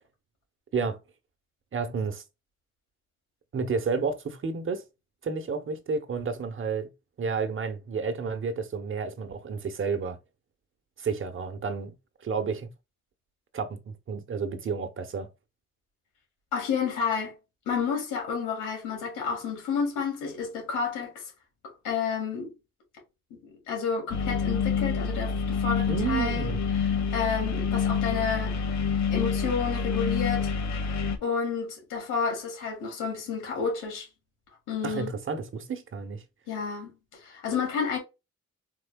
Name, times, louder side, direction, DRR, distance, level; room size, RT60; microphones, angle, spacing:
voice 1, 1.7-2.2 3.5-4.8 5.2-6.9 7.2-10.2 11.0-11.9 12.2-12.7 13.5-15.3 25.9-26.6 34.8-36.2, right 5 dB, 40° right, 1.0 m, -31 dB
voice 2, 16.5-17.3 17.7-21.2 21.6-22.5 23.3-28.7 29.1-30.5 31.2-34.1 34.7-35.1 36.5-36.9 37.2-38.0, left 6 dB, 90° left, 2.8 m, -30 dB
sound 1, 24.1-31.2, left 5 dB, 65° left, 1.3 m, -27 dB
4.5 x 4.4 x 2.3 m
cardioid pair, 90°, 30 cm